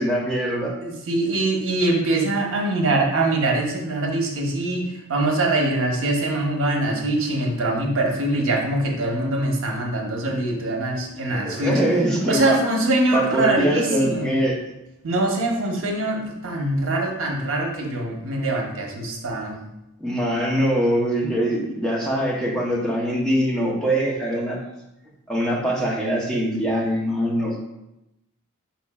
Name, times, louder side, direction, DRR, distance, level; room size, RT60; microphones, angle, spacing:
voice 1, 0.0-0.7 11.3-12.6 13.1-14.6 20.0-24.6 25.3-27.6, right 1 dB, 5° left, -4 dB, 0.6 m, -23 dB
voice 2, 0.8-11.8 12.3-14.4 15.0-19.6, right 2 dB, 60° right, 0 dB, 0.8 m, -23 dB
4.5 x 4.2 x 2.2 m, 0.91 s
head